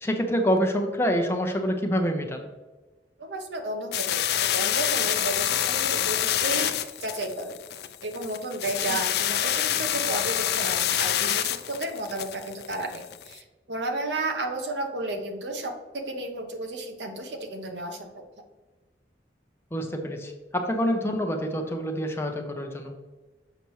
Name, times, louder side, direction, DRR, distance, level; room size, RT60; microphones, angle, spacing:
voice 1, 0.0-2.5 19.7-22.9, equal, 15° left, 2 dB, 0.7 m, -26 dB
voice 2, 3.2-6.7 7.0-7.6 8.0-18.2, right 2 dB, 75° right, 5 dB, 0.9 m, -33 dB
sound 1, 3.9-13.3, left 11 dB, 60° left, 0.4 m, -27 dB
6.9 x 5.9 x 3.1 m, 1.2 s
head